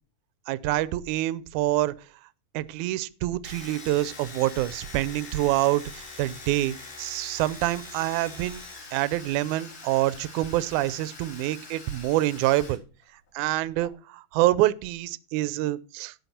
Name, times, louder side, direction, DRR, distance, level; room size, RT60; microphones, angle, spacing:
voice 1, 0.5-1.9 2.5-8.6 8.9-12.8 13.3-16.1, right 16 dB, 80° right, 1.8 m, -26 dB
Domestic sounds home sounds, 3.4-12.8 13.0-13.9, left 3 dB, 80° left, 5.4 m, -44 dB
17.5 x 5.9 x 4.3 m
omnidirectional pair, 4.2 m